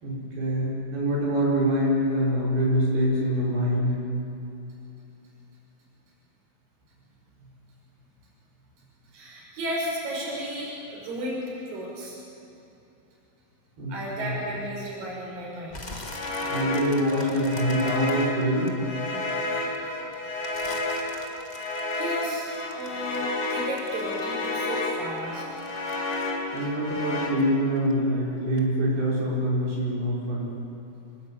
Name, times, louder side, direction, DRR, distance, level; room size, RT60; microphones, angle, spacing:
voice 1, 0.0-4.0 13.8-14.4 16.5-18.7 26.5-30.5, equal, 85° right, -6 dB, 7.2 m, -25 dB
voice 2, 9.1-12.2 13.9-15.9 21.6-25.4, equal, 65° right, -3 dB, 7.5 m, -34 dB
sound 1, 15.7-19.3 19.7-24.5 24.8-27.5 27.8-28.2 28.6-28.7, left 2 dB, 25° left, 0.9 m, -43 dB
sound 2, 16.0-27.3, left 2 dB, 50° left, 5.2 m, -31 dB
28.0 x 20.0 x 8.8 m, 2.9 s
omnidirectional pair, 4.4 m